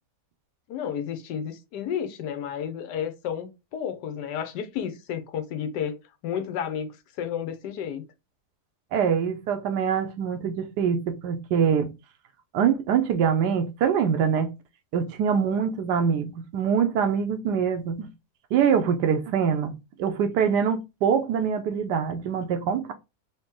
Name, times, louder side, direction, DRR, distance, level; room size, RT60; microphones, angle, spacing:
voice 1, 0.7-8.0, left 8 dB, 85° left, 1.3 m, -32 dB
voice 2, 8.9-11.9 12.5-14.5 14.9-18.1 18.5-22.9, right 7 dB, 80° right, 1.2 m, -24 dB
3.9 x 2.8 x 3.6 m
omnidirectional pair, 1.8 m